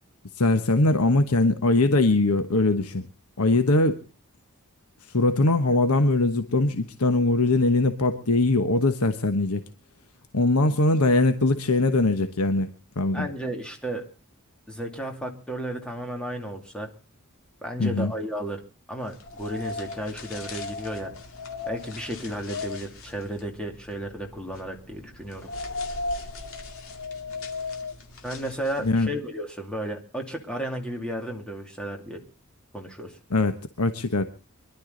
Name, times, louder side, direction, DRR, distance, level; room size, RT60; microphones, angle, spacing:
voice 1, 0.4-3.0 3.4-4.0 5.1-9.6 10.3-12.7 13.0-13.3 17.8-18.1 28.8-29.1 33.3-34.2, left 2 dB, 85° left, 8 dB, 1.2 m, -21 dB
voice 2, 13.1-14.1 14.7-16.9 17.6-18.6 18.9-21.1 21.7-25.5 28.2-32.2 32.7-33.2, right 1 dB, 5° left, 3 dB, 2.5 m, -33 dB
sound 1, 19.1-29.1, left 3 dB, 65° left, 2.2 m, -37 dB
24.5 x 12.0 x 3.9 m, 0.34 s
head